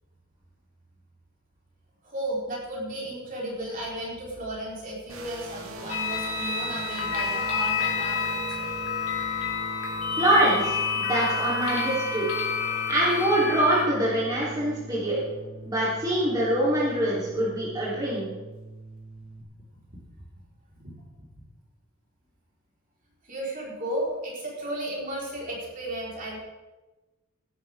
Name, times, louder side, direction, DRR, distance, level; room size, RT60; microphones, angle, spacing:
voice 1, 2.0-8.7 19.7-20.0 20.8-20.9 21.2-21.3 23.2-26.4, right 1 dB, 40° right, -4 dB, 4.2 m, -34 dB
sound 1, 5.1-19.4, right 2 dB, 85° right, 1.9 m, -42 dB
sound 2, 5.9-13.9, left 5 dB, 90° left, 3.3 m, -29 dB
voice 2, 10.2-12.3 12.9-15.2 15.7-18.3, right 1 dB, 20° right, -8 dB, 3.5 m, -24 dB
18.0 x 12.0 x 3.6 m, 1.2 s
head